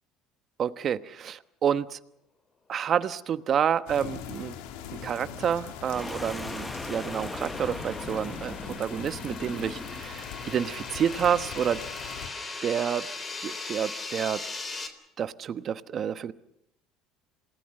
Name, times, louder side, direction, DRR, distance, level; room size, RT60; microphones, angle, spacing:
voice 1, 0.6-2.0 2.7-4.5 5.0-11.8 12.6-13.1 13.4-14.4 15.2-16.3, right 8 dB, 45° right, 12 dB, 1.1 m, -29 dB
sound 1, 3.9-12.3, left 8 dB, 80° left, 2.1 m, -41 dB
sound 2, 4.5-14.9, left 3 dB, 30° left, 3.7 m, -40 dB
sound 3, 5.9-10.2, left 1 dB, 10° left, 0.9 m, -39 dB
27.0 x 19.0 x 6.7 m, 0.79 s
supercardioid pair, 85°, 0 cm